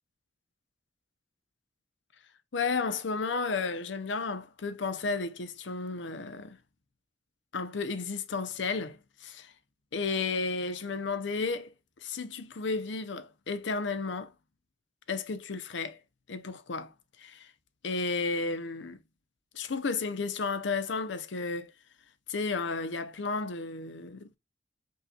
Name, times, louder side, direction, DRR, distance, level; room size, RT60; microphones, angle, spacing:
voice 1, 2.5-6.6 7.5-9.5 9.9-11.7 12.0-14.3 15.1-16.0 16.3-16.9 17.2-17.5 17.8-19.0 19.5-21.7 22.3-24.4, left 4 dB, 85° left, 0.6 m, -33 dB
5.3 x 2.8 x 2.3 m
head